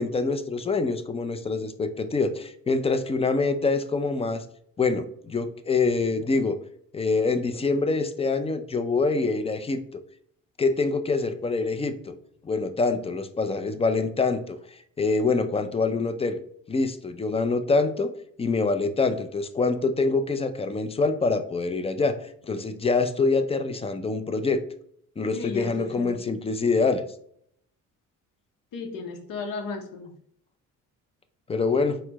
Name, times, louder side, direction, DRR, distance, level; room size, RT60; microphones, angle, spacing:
voice 1, 0.0-4.4 4.8-6.6 6.9-10.0 10.6-12.1 12.4-14.6 15.0-16.4 16.7-18.1 18.4-22.2 22.4-24.6 25.2-27.0 31.5-32.0, left 3 dB, 15° left, 9 dB, 0.4 m, -25 dB
voice 2, 25.3-26.2 28.7-30.1, left 4 dB, 55° left, 3 dB, 0.8 m, -34 dB
4.2 x 2.1 x 2.9 m, 0.65 s
supercardioid pair, 65°, 39 cm